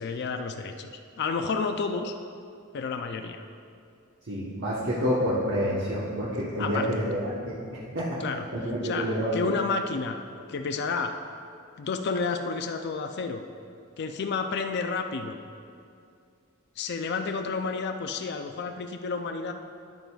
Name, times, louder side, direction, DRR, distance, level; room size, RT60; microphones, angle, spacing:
voice 1, 0.0-2.1 2.7-3.4 6.6-6.9 8.2-10.2 10.5-11.2 11.8-13.4 14.0-15.4 16.8-19.5, left 4 dB, 50° left, 6 dB, 0.4 m, -31 dB
voice 2, 4.3-8.2 8.5-9.3, equal, 60° right, -8 dB, 1.1 m, -28 dB
10.5 x 9.0 x 2.3 m, 2.4 s
head